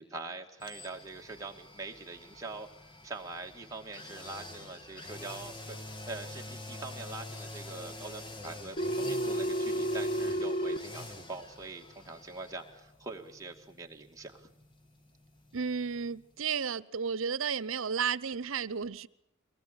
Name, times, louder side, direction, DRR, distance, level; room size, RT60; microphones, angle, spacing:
voice 1, 0.0-14.5, right 3 dB, 15° right, 2.2 m, -44 dB
sound 1, 0.6-16.4 16.7-16.8, left 2 dB, 25° left, 1.7 m, -47 dB
Telephone, 8.8-10.8, equal, 45° left, 1.0 m, -31 dB
voice 2, 15.5-19.1, right 6 dB, 80° right, 0.8 m, -33 dB
24.0 x 19.0 x 9.0 m
head